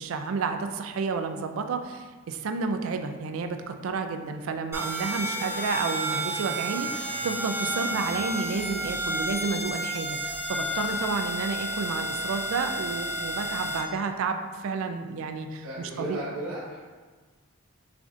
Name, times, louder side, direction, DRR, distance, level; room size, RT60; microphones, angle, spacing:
voice 1, 0.0-16.2, right 4 dB, 65° right, 6 dB, 0.3 m, -31 dB
sound 1, 4.7-13.8, right 1 dB, 10° right, 0.8 m, -31 dB
voice 2, 15.6-16.8, right 1 dB, 80° right, -9 dB, 1.0 m, -35 dB
6.6 x 2.6 x 2.5 m, 1.4 s
head